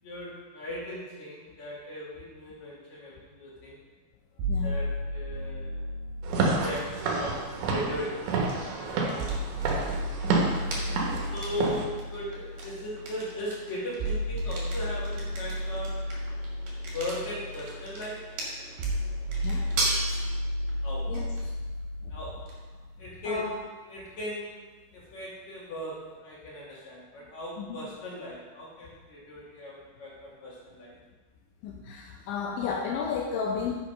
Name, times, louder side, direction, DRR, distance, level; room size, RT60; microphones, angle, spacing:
voice 1, 0.0-3.8 4.6-5.7 6.6-9.4 10.5-16.1 16.9-18.2 20.8-21.1 22.1-22.4 22.7-23.6 23.9-24.7 24.9-30.9, left 1 dB, 55° left, -6 dB, 2.1 m, -38 dB
sound 1, 4.4-8.4 9.2-23.2, equal, 90° right, 4.2 m, -34 dB
Walk footsteps / Siren, 6.2-11.8, right 3 dB, 70° right, 3.1 m, -29 dB
sound 2, 8.4-26.2, right 2 dB, 55° right, 2.7 m, -40 dB
voice 2, 31.6-33.8, left 6 dB, 85° left, 0 dB, 2.7 m, -32 dB
8.8 x 5.7 x 5.1 m, 1.3 s
omnidirectional pair, 5.9 m